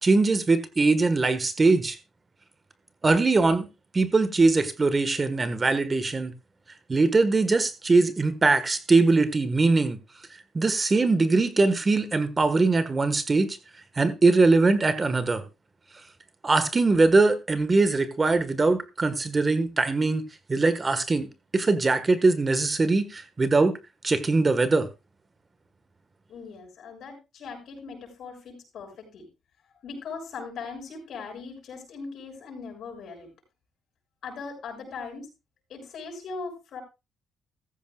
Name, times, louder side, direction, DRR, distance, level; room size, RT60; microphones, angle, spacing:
voice 1, 0.0-2.0 3.0-3.7 3.9-6.3 6.9-10.0 10.5-13.6 14.0-15.4 16.4-20.2 20.5-21.3 21.5-23.7 24.0-24.9, right 3 dB, 30° right, 1.5 m, -21 dB
voice 2, 26.3-29.3 29.8-33.3 34.2-35.3 35.7-36.8, left 4 dB, 70° left, 6.8 m, -39 dB
14.5 x 14.0 x 2.4 m
cardioid pair, 90°, 0 cm